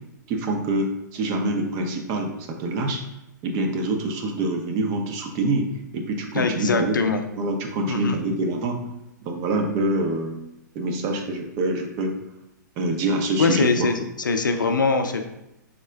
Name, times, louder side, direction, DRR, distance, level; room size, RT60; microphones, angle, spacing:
voice 1, 0.3-3.0 3.4-6.9 7.4-8.8 9.2-10.4 10.7-12.2 12.8-13.9, right 2 dB, 35° right, 3 dB, 0.6 m, -25 dB
voice 2, 6.3-7.2 7.9-8.2 13.4-15.2, left 4 dB, 85° left, 6 dB, 0.4 m, -22 dB
3.6 x 2.1 x 3.3 m, 0.87 s
hypercardioid pair, 120°, 10 cm